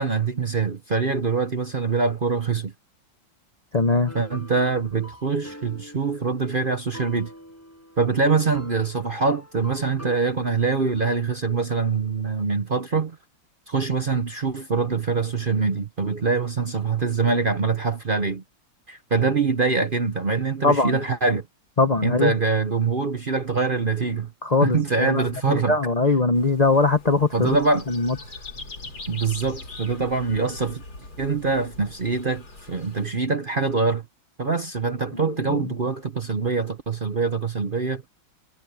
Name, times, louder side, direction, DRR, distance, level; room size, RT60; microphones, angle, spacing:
voice 1, 0.0-2.7 4.1-7.3 8.0-13.2 13.7-18.4 18.9-21.5 22.0-24.3 24.6-25.8 27.3-27.8 29.1-30.8 31.2-34.0 34.4-38.0, right 4 dB, 40° right, 0.8 m, -24 dB
voice 2, 3.7-4.1 20.6-21.0 21.8-22.3 24.4-27.6 27.9-28.2 35.1-35.7, left 3 dB, 40° left, 0.5 m, -21 dB
sound 1, 4.1-10.2, equal, 5° left, 7.6 m, -44 dB
sound 2, 26.3-33.1, left 2 dB, 75° left, 4.9 m, -41 dB
omnidirectional pair, 2.1 m